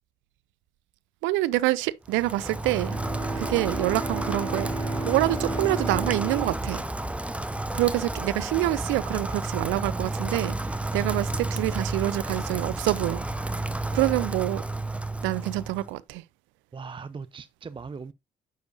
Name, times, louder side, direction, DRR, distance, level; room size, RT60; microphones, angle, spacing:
voice 1, 1.2-3.0 3.4-6.8 7.7-13.2 13.9-14.6 15.2-16.2, right 17 dB, 70° right, 0.5 m, -26 dB
Rain, 2.1-15.9, right 2 dB, 5° right, 0.9 m, -31 dB
Bowed string instrument, 2.8-7.7, right 2 dB, 20° left, 3.3 m, -35 dB
voice 2, 16.7-18.1, right 5 dB, 25° right, 0.5 m, -39 dB
9.4 x 6.4 x 2.6 m
hypercardioid pair, 45°, 20 cm